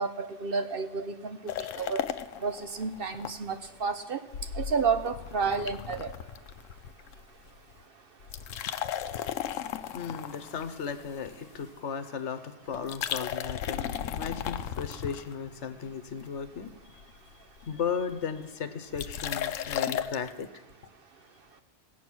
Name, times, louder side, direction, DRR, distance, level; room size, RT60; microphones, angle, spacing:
voice 1, 0.0-1.4 1.8-2.1 2.4-4.2 4.6-6.1, right 5 dB, 55° right, 8 dB, 0.8 m, -30 dB
sound 1, 1.5-3.3 3.6-3.7 4.3-7.2 7.5-7.8 8.2-11.6 12.7-15.7 16.2-16.7 17.0-17.1 17.3-17.4 17.6-17.9 18.9-20.3, left 10 dB, 90° left, 1.0 m, -35 dB
voice 2, 9.9-16.7 17.6-20.5, left 6 dB, 65° left, 10 dB, 1.2 m, -35 dB
18.0 x 8.2 x 6.2 m, 1.1 s
omnidirectional pair, 1.3 m